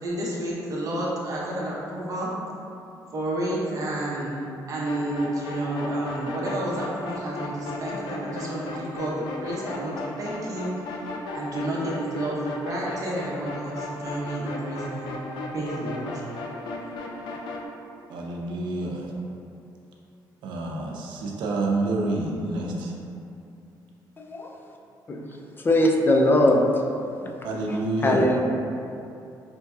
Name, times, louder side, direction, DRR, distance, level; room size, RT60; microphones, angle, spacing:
voice 1, 0.0-2.3 3.1-4.4 4.7-11.0 11.3-15.1 15.5-16.1, right 1 dB, 50° right, -5 dB, 0.8 m, -30 dB
sound 1, 4.9-17.7, left 2 dB, 85° left, 0.4 m, -35 dB
voice 2, 18.1-19.1 20.4-22.9 27.4-28.3, right 2 dB, 80° right, -1 dB, 0.5 m, -28 dB
voice 3, 25.6-26.7 27.2-27.3 27.7-28.4, left 1 dB, 25° left, 1 dB, 0.4 m, -21 dB
5.0 x 2.7 x 2.3 m, 2.6 s
cardioid pair, 100°, 8 cm